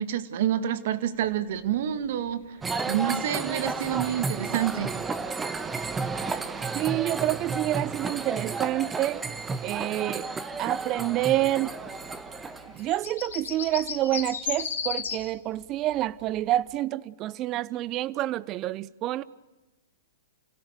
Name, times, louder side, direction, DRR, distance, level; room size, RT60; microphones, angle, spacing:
voice 1, 0.0-2.4 2.9-4.9, right 10 dB, 60° right, 1.9 m, -28 dB
sound 1, 1.2-15.4 15.6-15.7 15.9-16.4 16.7-16.8, left 7 dB, 75° left, 3.7 m, -40 dB
sound 2, 2.6-12.9, right 4 dB, 15° right, 1.4 m, -32 dB
voice 2, 6.7-9.2 9.6-10.3 10.6-11.8 12.7-19.2, right 15 dB, 35° right, 0.8 m, -28 dB
29.5 x 17.0 x 6.9 m
hypercardioid pair, 125°, 0 cm